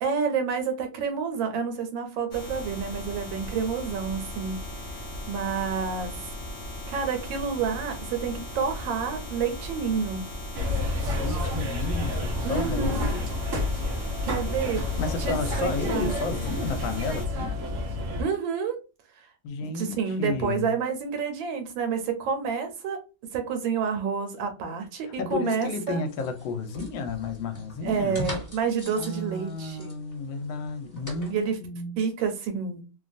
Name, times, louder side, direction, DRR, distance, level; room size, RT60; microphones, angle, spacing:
voice 1, 0.0-4.6 5.3-6.1 6.9-10.3 12.4-13.2 14.2-14.9 15.2-16.1 18.2-18.8 19.6-23.0 23.3-26.0 27.8-29.9 31.3-31.6 32.0-32.8, right 6 dB, 85° right, 1.4 m, -29 dB
sound 1, 2.3-17.3, left 1 dB, 65° left, 0.7 m, -38 dB
sound 2, 10.5-18.2, left 1 dB, 65° right, 0.8 m, -30 dB
voice 2, 11.2-13.3 15.0-17.5 19.4-20.7 25.2-28.2 29.0-32.0, left 4 dB, 80° left, 1.3 m, -32 dB
sound 3, 26.1-31.4, equal, 15° left, 0.8 m, -41 dB
3.1 x 2.3 x 2.5 m
omnidirectional pair, 2.1 m